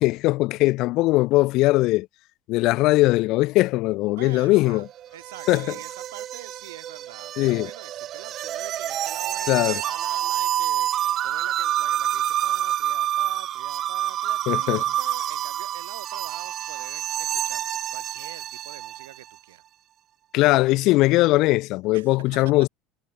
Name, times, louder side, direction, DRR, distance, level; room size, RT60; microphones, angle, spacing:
voice 1, 0.0-2.1 2.5-4.9 5.5-5.6 7.4-7.7 9.5-9.8 14.5-14.8 20.3-22.7, left 19 dB, 60° left, 0.5 m, -20 dB
voice 2, 4.2-4.9 5.1-19.6 21.9-22.5, right 14 dB, 75° right, 2.0 m, -45 dB
sound 1, 4.6-19.2, right 11 dB, 50° right, 0.4 m, -28 dB
hypercardioid pair, 75°, 0 cm